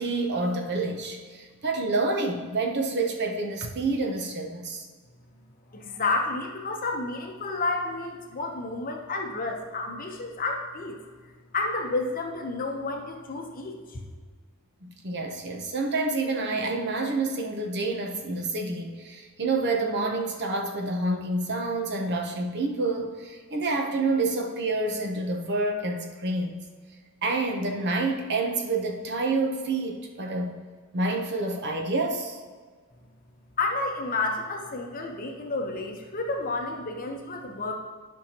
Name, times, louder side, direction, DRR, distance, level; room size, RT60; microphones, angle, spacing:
voice 1, 0.0-4.9 14.8-26.6 27.2-30.5 30.9-32.4, right 2 dB, 55° right, 3 dB, 0.9 m, -28 dB
voice 2, 5.7-11.0 11.5-14.0 33.6-37.7, left 3 dB, 40° left, 2 dB, 0.9 m, -30 dB
10.5 x 5.6 x 3.0 m, 1.5 s
head